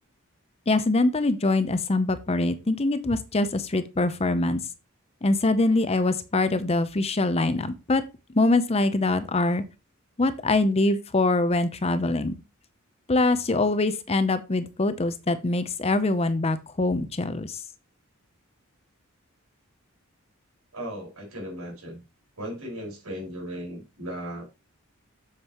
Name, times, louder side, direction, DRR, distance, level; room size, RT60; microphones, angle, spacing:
voice 1, 0.7-4.6 5.2-8.0 8.3-9.6 10.2-12.4 13.1-17.6, left 2 dB, 30° left, 12 dB, 0.6 m, -24 dB
voice 2, 20.7-22.0 22.4-24.4, equal, 80° right, -1 dB, 5.1 m, -36 dB
7.9 x 7.3 x 3.0 m, 0.28 s
head